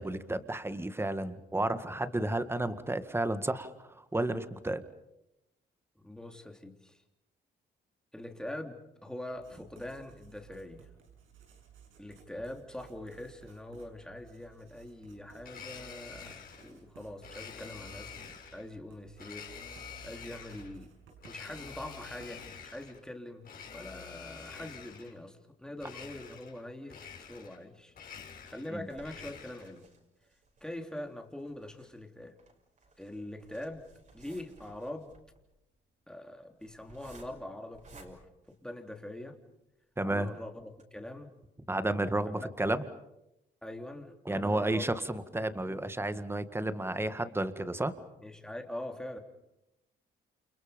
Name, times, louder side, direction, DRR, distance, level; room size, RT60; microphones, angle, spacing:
voice 1, 0.0-4.8 28.7-28.8 40.0-40.3 41.7-42.8 44.3-47.9, right 1 dB, 10° right, 11 dB, 1.9 m, -32 dB
voice 2, 6.0-7.0 8.1-10.9 12.0-18.2 18.5-19.5 20.0-21.0 21.2-27.0 27.3-29.9 30.6-32.4 33.0-33.9 34.1-35.1 36.1-39.4 40.0-41.3 42.3-42.5 43.6-44.9 48.2-49.2, left 1 dB, 5° left, 3 dB, 3.5 m, -43 dB
Writing, 9.3-23.1, right 7 dB, 85° right, 6.7 m, -58 dB
Domestic sounds home sounds, 15.4-16.7 17.2-18.7 19.2-20.7 21.2-23.0 23.4-25.2 25.8-26.6 26.9-27.6 27.9-29.8, left 6 dB, 45° left, 5.9 m, -47 dB
sound 1, 27.9-39.3 39.8-39.9 40.2-40.3 40.7-40.8, right 2 dB, 40° right, 6.1 m, -58 dB
29.5 x 28.5 x 5.3 m, 0.88 s
cardioid pair, 90°, 20 cm